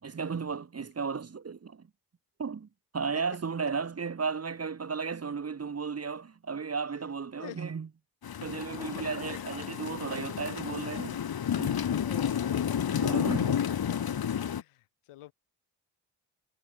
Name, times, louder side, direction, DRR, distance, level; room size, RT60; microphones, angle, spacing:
voice 1, 0.0-1.9 2.4-2.7 2.9-7.9 8.4-11.2 11.6-11.9 12.9-13.7, right 5 dB, 30° right, 1.0 m, -34 dB
sound 1, 8.2-14.6, left 8 dB, 45° left, 1.2 m, -31 dB
voice 2, 8.7-9.5 11.8-12.7 14.6-15.3, left 15 dB, 90° left, 4.7 m, -47 dB
supercardioid pair, 45°, 50 cm